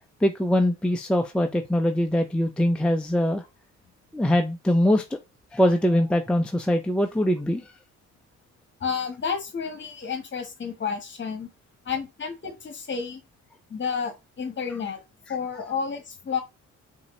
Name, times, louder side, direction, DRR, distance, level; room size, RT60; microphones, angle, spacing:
voice 1, 0.2-3.4 4.1-5.2 5.5-7.7, left 1 dB, 5° left, 0.5 m, -22 dB
voice 2, 8.8-11.5 11.8-13.2 13.7-15.0 15.3-16.4, left 6 dB, 40° left, 1.3 m, -31 dB
5.5 x 2.8 x 3.1 m
cardioid pair, 90°, 30 cm